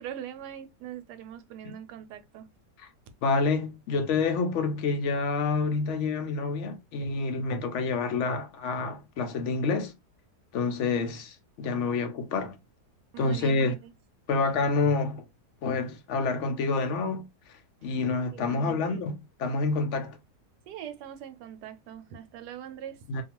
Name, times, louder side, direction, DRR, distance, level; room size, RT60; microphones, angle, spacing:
voice 1, 0.0-2.5 13.1-13.9 18.3-19.0 20.7-23.0, right 10 dB, 85° right, 1.1 m, -42 dB
voice 2, 3.2-9.9 10.5-12.6 13.2-13.7 14.3-15.2 15.6-17.3 17.8-20.2 23.1-23.2, left 4 dB, 65° left, 0.8 m, -28 dB
2.7 x 2.3 x 2.8 m
omnidirectional pair, 1.7 m